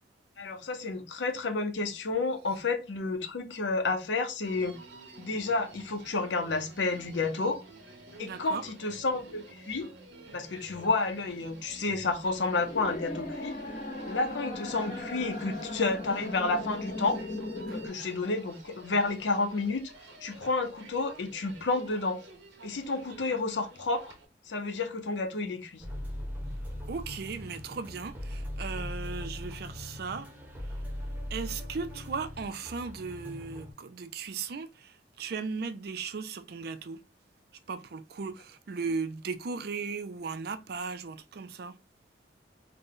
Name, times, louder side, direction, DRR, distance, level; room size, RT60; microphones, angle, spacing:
voice 1, 0.4-4.8 5.2-7.6 8.2-9.9 10.3-13.6 14.1-17.2 17.7-19.9 20.2-22.2 22.6-24.1 24.5-25.8, left 3 dB, 85° left, 0.7 m, -30 dB
Human voice, 4.4-24.3, right 2 dB, 85° right, 1.1 m, -50 dB
voice 2, 8.2-8.6 17.7-17.8 26.9-30.3 31.3-37.0 37.7-41.8, right 5 dB, 60° right, 0.4 m, -37 dB
sound 1, 12.2-17.9, left 2 dB, 45° left, 0.8 m, -38 dB
sound 2, 25.8-33.7, left 1 dB, 10° right, 0.8 m, -39 dB
3.8 x 2.2 x 3.7 m
head